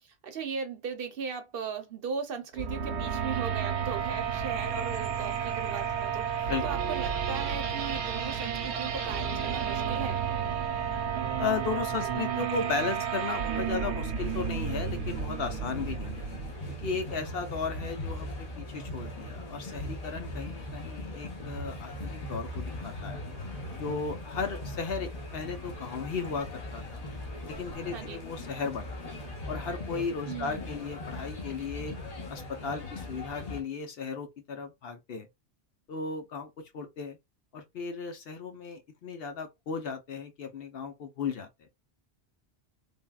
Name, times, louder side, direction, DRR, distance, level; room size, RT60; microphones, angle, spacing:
voice 1, 0.0-10.2 27.9-28.2 30.3-30.6, right 6 dB, 60° right, 0.8 m, -38 dB
sound 1, 2.5-16.5, right 7 dB, 85° right, 0.9 m, -32 dB
sound 2, 3.8-12.2, right 4 dB, 5° right, 0.4 m, -43 dB
voice 2, 11.4-16.3 16.8-23.2 23.7-27.0 27.5-29.0 29.5-31.9 32.3-35.3 35.9-37.2 37.5-41.7, left 5 dB, 65° left, 0.9 m, -35 dB
sound 3, 14.1-33.6, left 1 dB, 40° left, 0.8 m, -39 dB
3.5 x 2.2 x 2.2 m
omnidirectional pair, 1.1 m